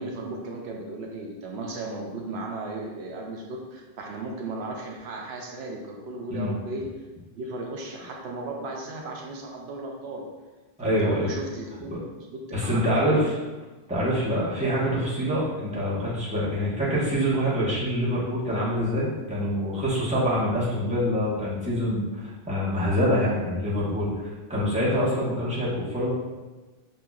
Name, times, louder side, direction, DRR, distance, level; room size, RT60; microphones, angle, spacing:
voice 1, 0.0-6.9 7.3-10.3 10.8-11.9 12.3-13.3, right 2 dB, 80° right, 0 dB, 0.9 m, -35 dB
voice 2, 10.8-11.3 11.9-12.0 12.5-13.3 13.9-26.1, equal, 5° right, -9 dB, 1.2 m, -25 dB
6.3 x 2.9 x 2.4 m, 1.2 s
omnidirectional pair, 1.1 m